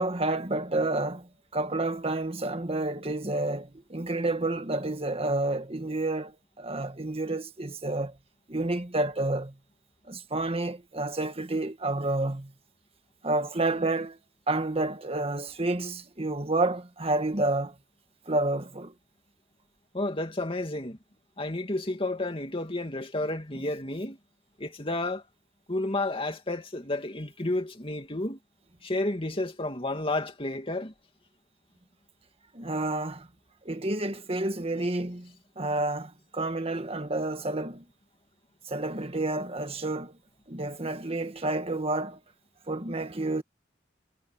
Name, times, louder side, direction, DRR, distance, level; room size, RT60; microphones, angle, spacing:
voice 1, 0.0-8.2 8.5-9.5 10.1-12.5 13.2-14.2 14.5-17.7 18.3-18.9 32.5-33.3 33.6-37.8 38.6-40.2 40.5-42.2 42.7-43.4, right 2 dB, 30° right, 1.7 m, -29 dB
voice 2, 19.9-21.0 21.4-24.2 24.6-25.2 25.7-28.4 28.8-30.9, left 2 dB, 30° left, 2.6 m, -31 dB
head